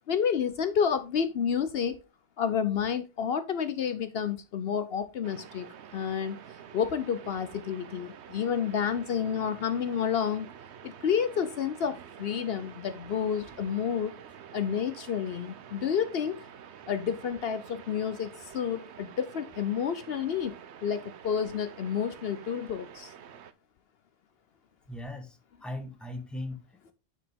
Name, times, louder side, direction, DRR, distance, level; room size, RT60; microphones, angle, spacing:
voice 1, 0.1-2.0 2.4-5.7 5.9-6.4 6.7-10.5 10.8-14.1 14.5-16.5 16.9-23.1, left 7 dB, 65° left, 0.9 m, -30 dB
sound 1, 5.2-23.5, right 8 dB, 85° right, 1.0 m, -48 dB
voice 2, 24.9-26.9, left 1 dB, ahead, 1.2 m, -39 dB
9.8 x 4.9 x 3.5 m
omnidirectional pair, 1.1 m